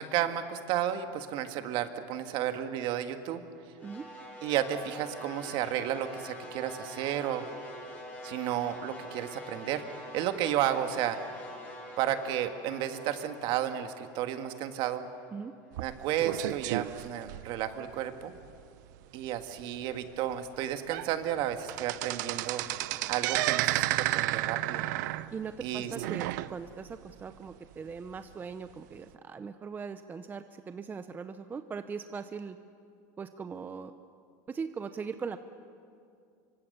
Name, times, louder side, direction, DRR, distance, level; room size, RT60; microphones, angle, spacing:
voice 1, 0.0-3.4 4.4-7.4 8.2-9.8 10.1-11.2 12.0-15.0 15.8-18.3 19.1-22.6 23.1-24.9 25.6-25.9, right 11 dB, 55° right, 7 dB, 1.8 m, -32 dB
sound 1, 3.8-16.0, equal, 15° left, 6.9 m, -46 dB
sound 2, 15.7-17.9 18.4-18.6 18.9-19.0 19.6-19.7 20.3-20.4 20.7-21.1 21.4-26.9 27.3-27.4 28.2-28.3, right 16 dB, 70° right, 0.7 m, -32 dB
voice 2, 25.3-32.6 33.2-33.9 34.5-35.4, right 5 dB, 20° right, 10 dB, 0.7 m, -40 dB
26.0 x 24.0 x 6.9 m, 2.4 s
supercardioid pair, 135°, 10 cm